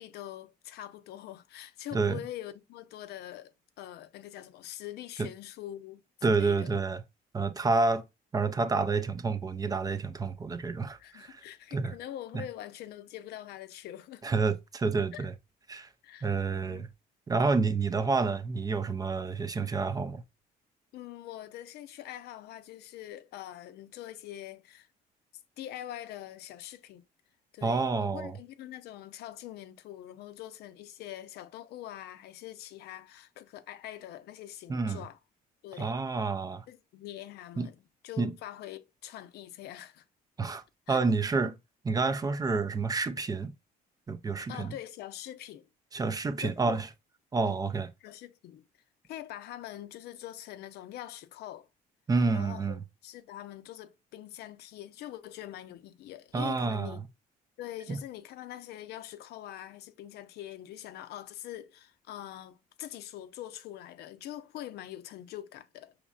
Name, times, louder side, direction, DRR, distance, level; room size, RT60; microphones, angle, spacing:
voice 1, 0.0-6.7 11.0-14.2 15.1-15.3 16.0-16.3 16.6-16.8 20.9-24.9 25.6-27.0 27.5-35.2 35.6-36.0 36.7-37.8 38.0-40.0 40.9-41.0 44.5-45.7 46.1-46.8 47.4-47.6 48.0-48.6 49.1-51.7 52.3-52.8 53.0-57.0 57.6-65.9, left 12 dB, 75° left, 0.5 m, -44 dB
voice 2, 6.2-7.0 7.3-8.0 8.3-11.4 11.7-11.9 14.2-15.3 15.7-15.9 16.2-16.9 17.3-20.2 27.6-28.4 34.7-35.0 35.8-36.7 37.6-37.7 38.2-38.3 40.4-41.6 41.8-43.5 44.1-44.7 45.9-46.9 47.3-47.9 52.1-52.8 56.3-57.0 57.9-58.0, right 4 dB, 20° right, 0.4 m, -29 dB
5.1 x 3.0 x 2.3 m
cardioid pair, 110°, 17 cm